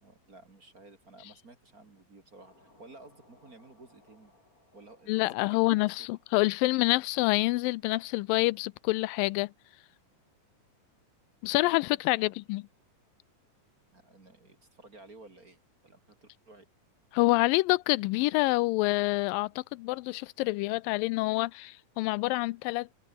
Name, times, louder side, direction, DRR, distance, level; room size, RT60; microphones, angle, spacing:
voice 1, 0.0-4.3 4.7-6.0 6.8-6.9 11.4-11.8 12.0-12.4 13.9-16.7, right 2 dB, 25° right, 2.7 m, -54 dB
sound 1, 2.4-10.4, left 2 dB, 25° left, 6.4 m, -66 dB
voice 2, 5.1-9.5 11.4-12.7 17.1-22.9, left 21 dB, 85° left, 2.2 m, -27 dB
omnidirectional pair, 4.0 m